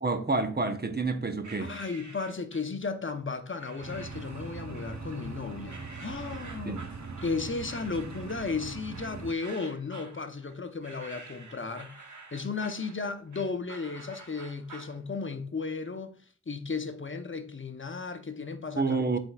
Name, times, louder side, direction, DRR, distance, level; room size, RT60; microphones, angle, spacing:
voice 1, 0.0-1.7 6.7-6.8 18.8-19.2, right 3 dB, 35° right, 0.9 m, -28 dB
sound 1, 1.4-2.8 3.6-4.3 4.7-5.3 5.7-15.0, right 3 dB, 85° right, 1.4 m, -49 dB
voice 2, 1.6-6.8 7.2-12.0 12.3-16.2 16.5-19.0, left 4 dB, 40° left, 0.8 m, -35 dB
sound 2, 3.8-9.3, right 4 dB, 70° right, 0.9 m, -41 dB
12.5 x 4.4 x 2.4 m
wide cardioid pair, 60°, 29 cm